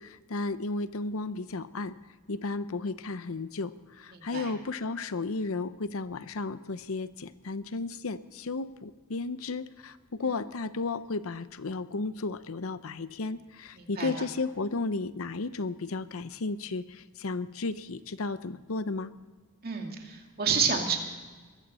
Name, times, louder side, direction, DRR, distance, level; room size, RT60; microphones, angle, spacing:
voice 1, 0.0-1.9 2.3-19.1, left 3 dB, 70° left, 14 dB, 0.7 m, -34 dB
voice 2, 4.1-4.5 10.2-10.3 13.7-14.1 19.6-21.0, right 6 dB, 45° right, 2 dB, 2.4 m, -30 dB
22.5 x 14.0 x 4.3 m, 1.4 s
head